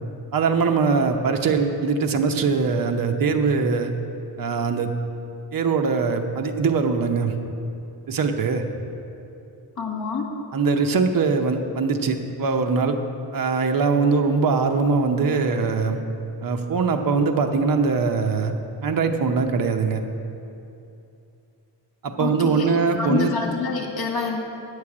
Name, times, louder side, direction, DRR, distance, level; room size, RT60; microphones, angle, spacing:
voice 1, 0.3-3.9 4.4-4.9 5.5-7.3 8.1-8.6 10.5-13.0 13.3-16.0 16.4-18.5 18.8-20.0 22.0-23.3, right 4 dB, 50° right, 5 dB, 0.8 m, -22 dB
voice 2, 9.8-10.3 22.2-24.4, left 4 dB, 60° left, 0 dB, 1.9 m, -27 dB
8.6 x 6.5 x 8.5 m, 2.7 s
wide cardioid pair, 125°, 43 cm